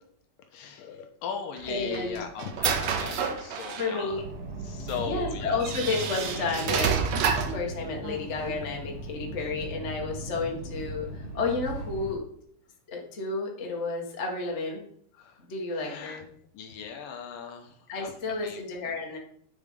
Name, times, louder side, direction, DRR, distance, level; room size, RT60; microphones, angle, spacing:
voice 1, 0.5-4.2 4.6-5.7 15.1-15.5 15.7-16.2 16.5-18.6, left 6 dB, 75° left, 4 dB, 2.3 m, -38 dB
sound 1, 1.6-4.0 4.9-5.0 5.6-7.6, right 6 dB, 85° right, 1.5 m, -29 dB
voice 2, 1.7-2.2 3.8-4.2 5.0-12.2 12.9-14.8 15.5-16.2 17.9-19.2, left 4 dB, 55° left, 0 dB, 0.7 m, -31 dB
Subway metro underground, 4.1-12.1, right 2 dB, 45° right, 2.2 m, -38 dB
10.0 x 4.8 x 5.2 m, 0.64 s
omnidirectional pair, 4.4 m